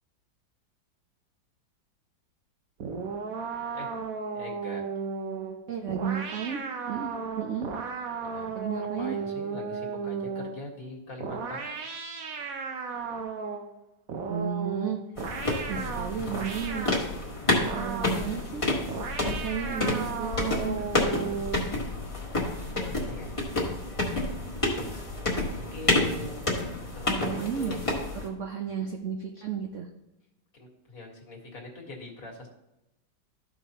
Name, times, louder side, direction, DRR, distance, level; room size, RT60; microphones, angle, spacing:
sound 1, 2.8-10.6 11.2-13.7 14.1-17.0 17.6-18.3 18.9-21.7, right 5 dB, 60° right, 1.1 m, -35 dB
voice 1, 4.3-4.8 8.2-11.7 22.6-23.3 25.5-26.5 26.9-27.8 30.5-32.5, left 2 dB, 45° left, 0 dB, 2.0 m, -42 dB
voice 2, 5.7-7.7 8.5-9.2 14.3-15.0 15.7-16.9 17.7-18.7 19.2-21.2 27.1-27.8 28.1-29.9, right 7 dB, 75° right, 3 dB, 0.6 m, -33 dB
sound 2, 15.2-28.3, left 2 dB, 20° left, 1.4 m, -29 dB
13.5 x 5.4 x 2.9 m, 0.92 s
omnidirectional pair, 2.1 m